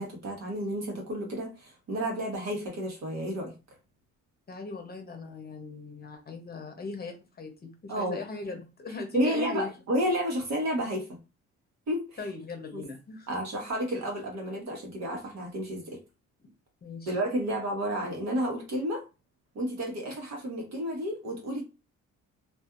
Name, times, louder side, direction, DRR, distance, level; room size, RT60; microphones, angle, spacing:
voice 1, 0.0-3.5 7.9-8.2 9.1-11.1 11.9-12.0 12.7-12.8 13.3-16.0 17.1-19.0 19.5-21.6, equal, 60° right, 0 dB, 1.3 m, -31 dB
voice 2, 4.5-9.7 12.2-13.3 16.8-17.2, left 3 dB, 30° left, 3 dB, 0.8 m, -38 dB
2.6 x 2.4 x 2.4 m, 0.29 s
cardioid pair, 90°, 30 cm